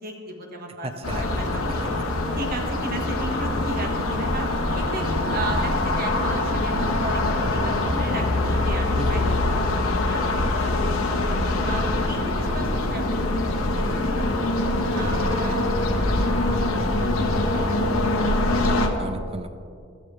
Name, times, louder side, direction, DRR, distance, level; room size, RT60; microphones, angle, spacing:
voice 1, 0.0-1.6 1.9-4.5 4.7-7.2 7.5-10.3 10.6-10.7 11.0-11.2 11.6-13.0 13.3-14.5 14.9-17.8, right 1 dB, 40° right, 2 dB, 1.5 m, -36 dB
voice 2, 0.8-1.2 1.8-1.9 9.0-9.5 14.8-15.2 18.6-19.5, right 2 dB, 25° right, 8 dB, 0.6 m, -34 dB
sound 1, 1.0-18.9, left 2 dB, 70° left, 1.2 m, -24 dB
15.5 x 12.0 x 3.3 m, 2.4 s
head